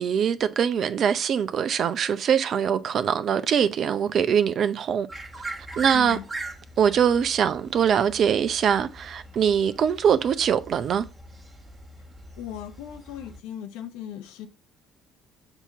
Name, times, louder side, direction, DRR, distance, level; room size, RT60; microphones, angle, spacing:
voice 1, 0.0-5.1 5.8-6.2 6.8-11.0, right 8 dB, 55° right, 0.6 m, -23 dB
sound 1, 5.1-13.4, right 2 dB, 25° right, 1.6 m, -41 dB
voice 2, 5.9-6.2 12.4-14.5, left 10 dB, 75° left, 0.9 m, -37 dB
6.8 x 2.9 x 5.9 m
hypercardioid pair, 60°, 0 cm